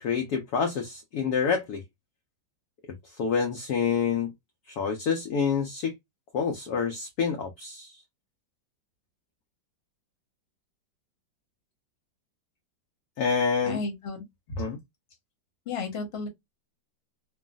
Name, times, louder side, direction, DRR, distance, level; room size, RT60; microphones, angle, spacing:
voice 1, 0.0-1.8 3.2-4.3 4.7-5.9 6.3-7.9 13.2-13.8 14.6-14.8, left 6 dB, 70° left, 1.0 m, -27 dB
voice 2, 13.7-14.2 15.7-16.3, left 4 dB, 40° left, 1.1 m, -33 dB
3.1 x 2.4 x 2.3 m
omnidirectional pair, 2.0 m